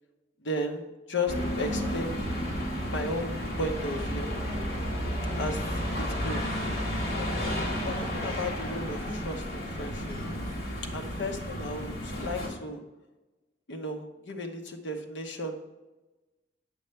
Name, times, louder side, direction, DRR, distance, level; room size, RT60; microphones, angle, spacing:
voice 1, 0.4-2.2 2.9-4.3 5.4-5.6 5.9-6.5 7.2-10.2 10.9-12.8 13.7-15.6, left 1 dB, 90° left, 4 dB, 1.1 m, -35 dB
sound 1, 1.3-12.5, equal, 60° left, 2.0 m, -32 dB
8.1 x 6.6 x 3.3 m, 1.1 s
head